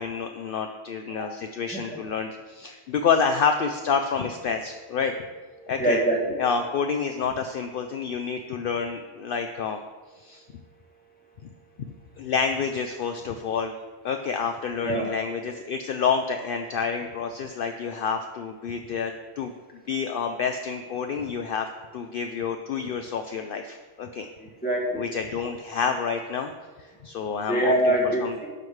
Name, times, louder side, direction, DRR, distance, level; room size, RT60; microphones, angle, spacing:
voice 1, 0.0-5.1 5.7-6.0 6.4-9.8 10.2-10.4 12.2-13.7 14.0-19.5 19.9-24.3 25.0-26.5 26.8-27.9 28.2-28.3, left 6 dB, 60° left, 6 dB, 0.7 m, -28 dB
voice 2, 1.7-2.0 5.6-6.4 14.8-15.1 24.6-25.1 27.5-28.5, right 1 dB, 10° left, -4 dB, 1.9 m, -24 dB
12.0 x 7.9 x 3.2 m, 1.3 s
omnidirectional pair, 1.1 m